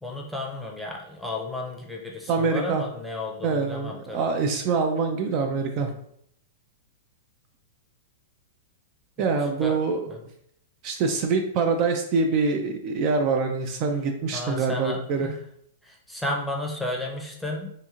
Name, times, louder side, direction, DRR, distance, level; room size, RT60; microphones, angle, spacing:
voice 1, 0.0-4.3 5.9-6.0 9.3-9.4 9.6-9.8 10.1-10.2 14.3-15.4 15.8-17.7, left 2 dB, ahead, -1 dB, 0.6 m, -33 dB
voice 2, 2.3-2.8 3.4-5.9 9.2-10.1 10.8-15.3, right 4 dB, 45° right, 4 dB, 0.3 m, -25 dB
2.8 x 2.6 x 2.4 m, 0.71 s
hypercardioid pair, 110°, 0 cm